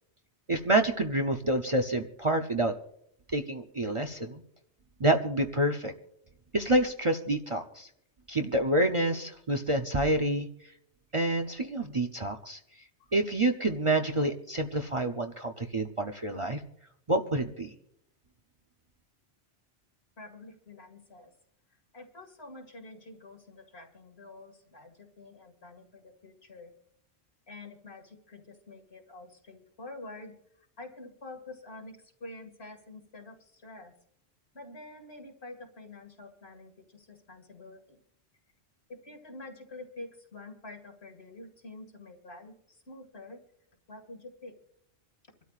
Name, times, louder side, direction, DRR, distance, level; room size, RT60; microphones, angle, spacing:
voice 1, 0.5-2.7 3.3-4.4 5.0-5.9 6.5-7.9 8.3-10.5 11.1-12.6 13.1-16.6 17.1-17.7, right 1 dB, 35° right, 5 dB, 0.7 m, -28 dB
voice 2, 20.2-21.3 21.9-26.7 27.5-30.4 30.8-33.9 34.5-38.0 38.9-43.4 43.9-44.6, left 2 dB, 65° left, 2 dB, 2.4 m, -47 dB
26.5 x 12.5 x 2.4 m, 0.74 s
omnidirectional pair, 1.1 m